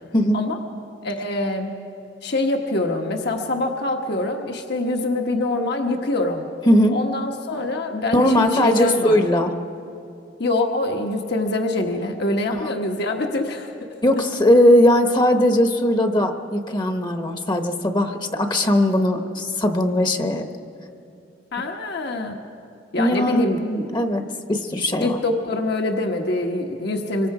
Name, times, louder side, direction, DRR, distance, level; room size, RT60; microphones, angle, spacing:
voice 1, 1.0-1.8 2.2-6.4 6.9-9.2 10.4-13.7 21.5-22.3 22.9-23.6 25.0-27.3, left 2 dB, 60° left, 3 dB, 1.3 m, -24 dB
voice 2, 6.7-7.0 8.1-9.5 12.5-12.7 14.0-20.4 23.0-24.2 24.5-25.2, left 1 dB, 25° left, 6 dB, 1.0 m, -19 dB
25.0 x 23.5 x 4.9 m, 2.6 s
head